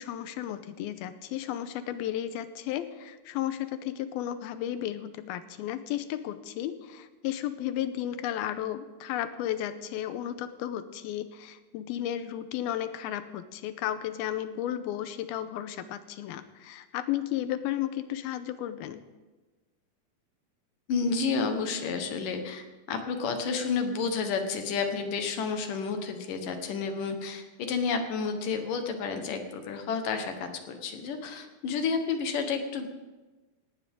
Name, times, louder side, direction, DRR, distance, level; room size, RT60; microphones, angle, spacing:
voice 1, 0.0-19.0, left 11 dB, 90° left, 11 dB, 2.7 m, -34 dB
voice 2, 20.9-32.9, left 5 dB, 65° left, 6 dB, 2.8 m, -30 dB
17.5 x 17.5 x 3.7 m, 1.2 s
omnidirectional pair, 4.3 m